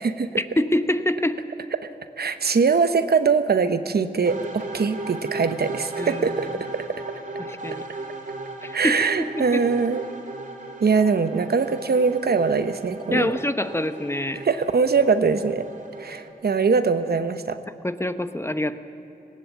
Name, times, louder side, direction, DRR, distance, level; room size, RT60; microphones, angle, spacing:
voice 1, 0.4-1.4 6.0-6.5 7.4-7.8 8.6-9.6 13.1-14.4 17.8-18.8, left 1 dB, 15° left, 9 dB, 1.0 m, -26 dB
voice 2, 2.2-7.0 8.7-10.0 10.8-13.4 14.4-15.7 16.0-17.6, right 5 dB, 75° right, 10 dB, 0.9 m, -22 dB
sound 1, 4.2-16.3, right 2 dB, 55° right, 3.1 m, -36 dB
19.0 x 17.5 x 8.4 m, 3.0 s
wide cardioid pair, 55°, 16 cm